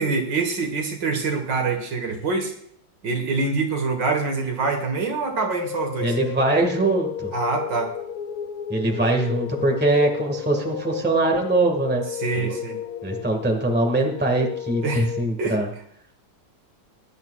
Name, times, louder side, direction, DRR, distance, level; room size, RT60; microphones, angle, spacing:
voice 1, 0.0-2.5 3.0-6.1 7.3-7.9 12.2-12.8 14.8-15.1 15.4-15.6, right 4 dB, 70° right, 4 dB, 2.2 m, -25 dB
sound 1, 5.0-15.2, left 10 dB, 70° left, 1.0 m, -33 dB
voice 2, 6.0-7.3 8.7-12.0 12.4-12.5 13.0-15.7, right 2 dB, 5° right, 2 dB, 1.6 m, -22 dB
20.5 x 10.5 x 2.4 m, 0.68 s
omnidirectional pair, 2.1 m